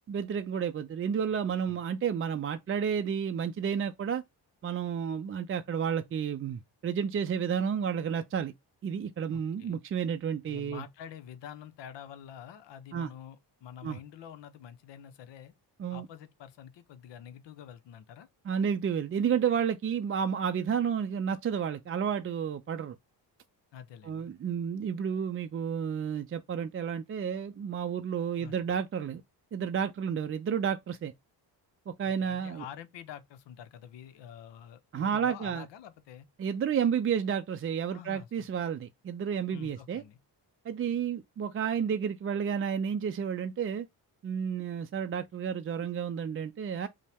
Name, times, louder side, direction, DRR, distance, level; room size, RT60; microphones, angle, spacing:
voice 1, 0.1-4.2 4.6-8.5 8.8-10.8 12.9-13.1 13.8-14.0 15.8-16.1 18.5-23.0 24.0-29.2 29.5-31.1 31.9-32.6 34.9-35.7 36.4-40.0 40.7-43.9 44.2-46.9, right 7 dB, 35° right, 0.4 m, -31 dB
voice 2, 9.3-9.8 10.4-15.5 15.9-18.3 23.7-24.3 28.4-28.8 32.2-36.3 37.9-38.5 39.5-40.2, left 9 dB, 85° left, 0.8 m, -47 dB
5.3 x 2.1 x 3.4 m
cardioid pair, 85°, 42 cm